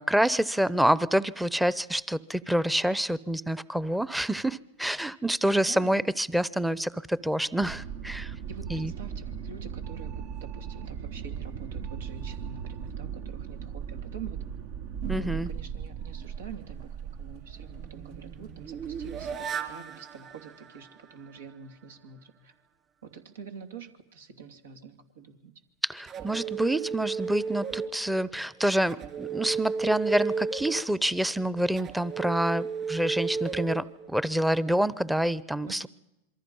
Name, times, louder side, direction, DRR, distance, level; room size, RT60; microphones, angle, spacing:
voice 1, 0.0-8.3 8.7-8.9 15.1-15.5 25.8-35.9, right 1 dB, 5° right, 19 dB, 0.8 m, -27 dB
voice 2, 5.4-6.1 8.5-14.4 15.1-22.5 23.0-25.5 35.7-35.9, right 6 dB, 85° right, 6 dB, 2.9 m, -46 dB
sound 1, 7.6-19.4, right 8 dB, 60° right, 1.4 m, -38 dB
sound 2, 17.6-21.5 26.1-28.4 28.9-34.5, right 5 dB, 35° right, 3.2 m, -34 dB
27.0 x 23.5 x 5.6 m, 0.96 s
hypercardioid pair, 105°, 0 cm